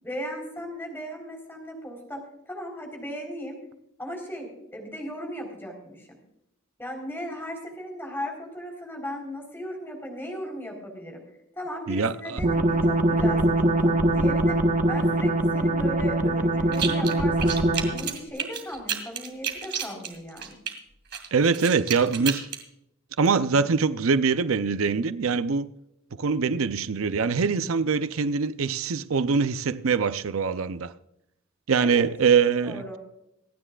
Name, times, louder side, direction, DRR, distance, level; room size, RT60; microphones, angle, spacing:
voice 1, 0.0-2.2 2.5-3.6 4.0-6.2 6.8-11.2 11.5-14.6 14.9-17.5 17.9-20.6 31.8-32.1 32.6-33.0, equal, 10° left, 4.0 m, -37 dB
voice 2, 11.9-12.4 21.3-22.5 23.2-25.7 26.2-30.9 31.7-32.8, right 5 dB, 90° right, 0.6 m, -23 dB
sound 1, 12.4-18.1, right 1 dB, 40° right, 1.3 m, -22 dB
sound 2, 16.7-17.1 17.4-20.7 21.1-22.6, right 8 dB, 60° right, 2.3 m, -31 dB
26.0 x 10.0 x 2.4 m
head